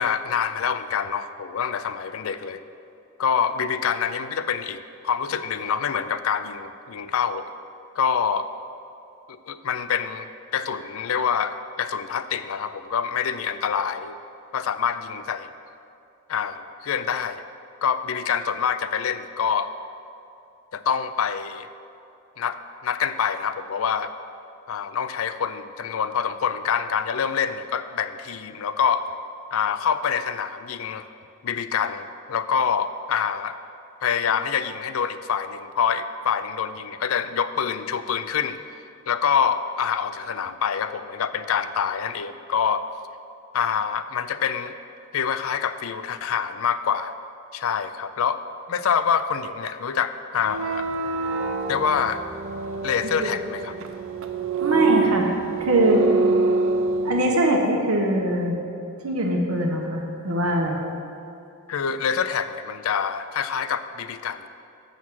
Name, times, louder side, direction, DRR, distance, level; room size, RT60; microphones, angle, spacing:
voice 1, 0.0-2.6 3.2-7.5 8.0-8.5 9.3-14.2 14.5-15.5 16.3-17.4 17.8-19.7 20.7-21.7 22.4-24.1 24.7-29.1 29.5-31.1 31.4-33.6 34.0-38.6 39.1-42.8 43.5-44.7 45.1-47.1 47.5-48.4 48.7-50.9 51.7-52.2 52.8-53.7 61.7-64.5, left 7 dB, 70° left, 12 dB, 0.4 m, -26 dB
sound 1, 50.4-57.4, right 4 dB, 65° right, 0.5 m, -26 dB
voice 2, 54.6-55.3 55.6-56.0 57.0-58.5 59.0-60.8, right 1 dB, 90° right, 1 dB, 1.2 m, -22 dB
7.2 x 6.3 x 6.2 m, 2.6 s
head